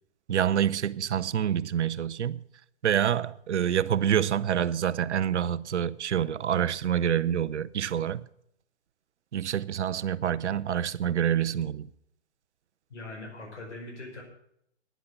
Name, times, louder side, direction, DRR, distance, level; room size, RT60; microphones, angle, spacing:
voice 1, 0.3-2.4 2.8-8.2 9.3-11.9, right 9 dB, 80° right, 0.7 m, -27 dB
voice 2, 12.9-14.2, left 2 dB, 85° left, 5.0 m, -41 dB
10.5 x 10.0 x 6.6 m
hypercardioid pair, 145°, 34 cm